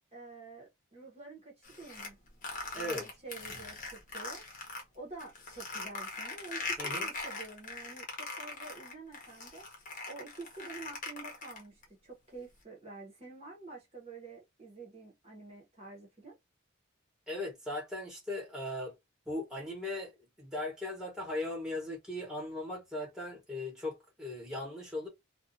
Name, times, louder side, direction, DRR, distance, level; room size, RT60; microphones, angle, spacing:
voice 1, 0.1-2.2 2.7-4.4 4.9-9.7 10.0-16.4, right 3 dB, 30° right, 0.9 m, -48 dB
sound 1, 1.6-4.8 5.2-11.8, left 3 dB, 40° left, 0.8 m, -40 dB
voice 2, 2.7-3.1 6.8-7.1 17.3-18.9 19.3-20.1 20.4-25.1, left 1 dB, 5° right, 1.0 m, -38 dB
2.4 x 2.3 x 2.6 m
head